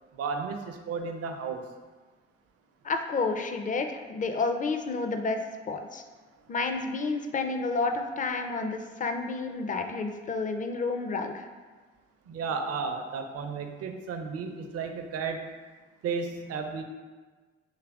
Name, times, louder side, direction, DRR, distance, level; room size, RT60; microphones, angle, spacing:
voice 1, 0.1-1.6 12.3-15.4 16.0-16.8, right 5 dB, 55° right, 5 dB, 0.5 m, -33 dB
voice 2, 2.8-5.4 5.7-6.0 6.5-11.5, left 3 dB, 25° left, 6 dB, 0.4 m, -30 dB
4.8 x 3.3 x 2.3 m, 1.4 s
hypercardioid pair, 45°, 30 cm